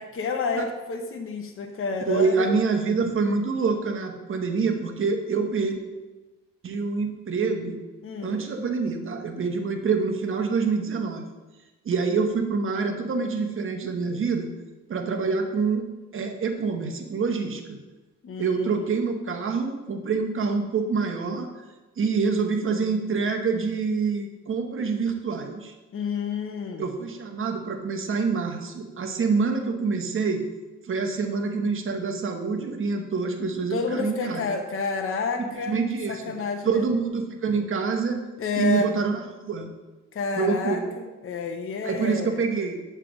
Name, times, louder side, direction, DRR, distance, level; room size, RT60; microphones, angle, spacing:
voice 1, 0.0-2.5 8.0-8.3 18.2-18.9 25.9-26.9 33.7-35.8 36.1-36.8 38.4-38.9 40.1-42.4, left 4 dB, 45° left, 4 dB, 0.8 m, -29 dB
voice 2, 2.1-5.8 6.6-7.8 8.2-11.2 11.8-14.5 14.9-15.8 16.1-17.8 18.4-21.5 22.0-25.7 26.8-30.4 30.8-34.5 35.7-36.2 36.6-38.2 38.6-39.7 40.4-40.8 41.8-42.8, right 4 dB, 45° right, 5 dB, 1.0 m, -26 dB
7.6 x 3.4 x 6.2 m, 1.2 s
cardioid pair, 90°, 30 cm